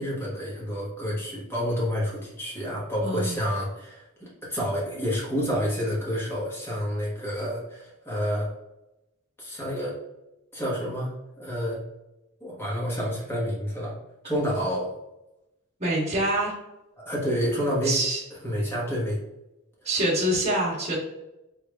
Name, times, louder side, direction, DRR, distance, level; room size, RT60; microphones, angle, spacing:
voice 1, 0.0-8.5 9.4-9.9 10.5-11.8 12.4-13.9 14.2-14.9 17.0-18.0 18.4-19.2, equal, 10° left, -5 dB, 1.3 m, -29 dB
voice 2, 3.0-3.3 15.8-16.5 17.8-18.2 19.8-21.0, right 1 dB, 30° right, -5 dB, 1.3 m, -25 dB
3.7 x 3.2 x 2.3 m, 0.92 s
head